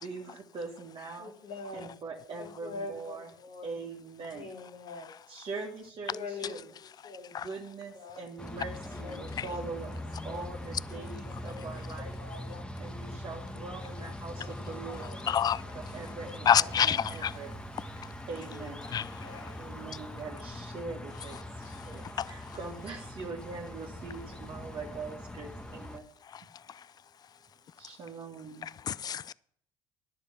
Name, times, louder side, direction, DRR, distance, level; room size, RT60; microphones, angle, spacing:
voice 1, 0.0-1.3 1.7-3.3 3.6-4.4 5.3-6.6 7.3-12.1 12.8-15.1 15.7-17.5 18.3-18.8 19.6-26.1 27.8-28.7, right 4 dB, 45° right, 1.7 m, -42 dB
voice 2, 1.2-1.9 2.3-3.7 4.3-5.1 6.1-7.4 7.9-9.6 10.0-10.5 11.0-11.1 11.4-12.8 13.3-13.7 14.3-15.7 16.2-17.0 18.4-19.7, left 3 dB, 60° left, 3.1 m, -46 dB
sound 1, 8.4-26.0, left 1 dB, 5° left, 1.2 m, -42 dB
voice 3, 15.3-15.6 16.5-17.3 18.9-19.4 21.7-21.9 22.2-22.6 26.3-26.9 28.6-29.3, left 9 dB, 30° left, 0.4 m, -29 dB
10.5 x 6.7 x 5.7 m
hypercardioid pair, 65°, 13 cm